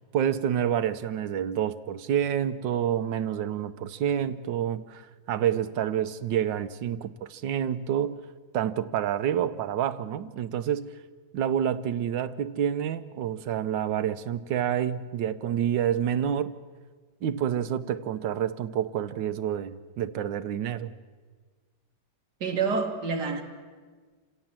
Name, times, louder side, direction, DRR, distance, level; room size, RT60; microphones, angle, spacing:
voice 1, 0.1-8.2 8.5-10.9 11.3-16.5 17.2-20.9, right 9 dB, 85° right, 1.5 m, -28 dB
voice 2, 22.4-23.4, right 5 dB, 65° right, 2.4 m, -27 dB
28.0 x 17.0 x 7.5 m
omnidirectional pair, 2.0 m